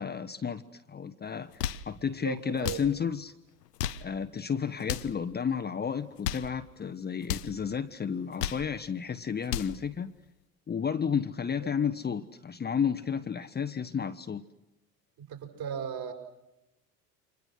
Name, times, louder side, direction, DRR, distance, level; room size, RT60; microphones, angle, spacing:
voice 1, 0.0-3.3 4.0-10.1 10.7-14.4, left 7 dB, 20° left, 8 dB, 1.2 m, -32 dB
sound 1, 1.4-1.9 2.6-2.9 3.6-4.1 4.8-5.2 6.0-6.5 7.2-7.5 8.2-8.7 9.3-9.8, left 10 dB, 75° left, 1.1 m, -34 dB
voice 2, 2.2-2.8 11.6-11.7 15.2-16.1, right 7 dB, 45° right, 5 dB, 6.1 m, -37 dB
29.5 x 26.5 x 6.4 m, 0.91 s
figure-of-eight pair, 70°, 49 cm